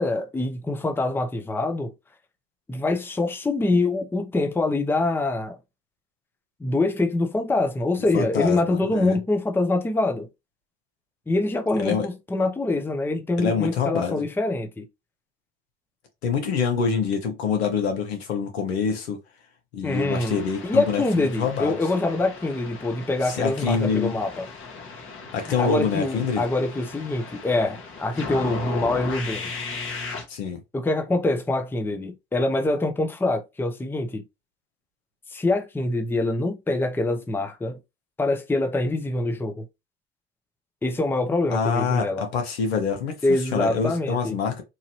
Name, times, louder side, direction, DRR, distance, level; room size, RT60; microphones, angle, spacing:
voice 1, 0.0-1.9 2.7-5.6 6.6-10.3 11.3-14.8 19.8-24.5 25.6-29.5 30.7-34.2 35.3-37.8 38.2-39.6 40.8-42.3 43.2-44.4, left 2 dB, 5° left, 0.6 m, -25 dB
voice 2, 8.1-9.2 11.8-12.1 13.4-14.2 16.2-19.2 19.7-21.8 23.2-24.2 25.3-26.5 30.3-30.6 41.5-44.6, left 6 dB, 80° left, 1.1 m, -26 dB
sound 1, 19.9-30.2, left 4 dB, 40° left, 1.2 m, -37 dB
3.0 x 2.5 x 2.8 m
hypercardioid pair, 80°, 31 cm